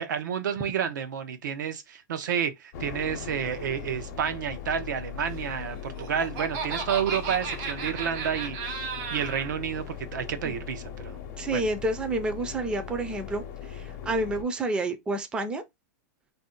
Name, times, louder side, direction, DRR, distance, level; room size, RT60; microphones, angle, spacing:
voice 1, 0.0-11.2 11.5-11.6, right 8 dB, 85° right, 0.7 m, -30 dB
sound 1, 2.7-14.4, left 8 dB, 55° left, 0.7 m, -39 dB
Laughter, 5.7-9.5, right 5 dB, 60° right, 1.0 m, -34 dB
voice 2, 11.4-15.6, right 2 dB, 10° right, 0.4 m, -29 dB
2.6 x 2.1 x 3.7 m
supercardioid pair, 150°, 10 cm